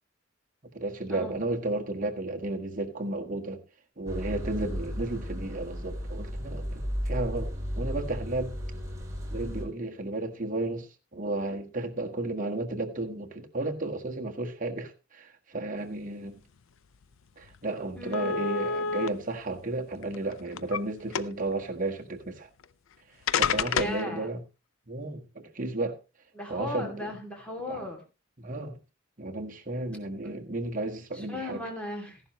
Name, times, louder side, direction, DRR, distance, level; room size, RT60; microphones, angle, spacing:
voice 1, 0.7-3.6 4.0-8.6 9.3-16.4 17.4-22.5 23.4-24.4 24.9-26.0 26.5-27.1 27.7-27.8 28.4-28.8 29.2-31.6, right 2 dB, 40° right, 1.6 m, -33 dB
sound 1, 4.1-9.6, equal, 15° right, 3.7 m, -34 dB
sound 2, 17.0-17.1 17.4-17.6 18.1-19.1 20.0-20.8 21.1-21.5 22.6-22.7 23.3-24.0, left 6 dB, 80° left, 0.5 m, -28 dB
voice 2, 18.0-18.3 23.7-24.3 26.3-28.0 31.1-32.2, left 2 dB, 5° left, 2.7 m, -37 dB
14.5 x 11.0 x 3.1 m
head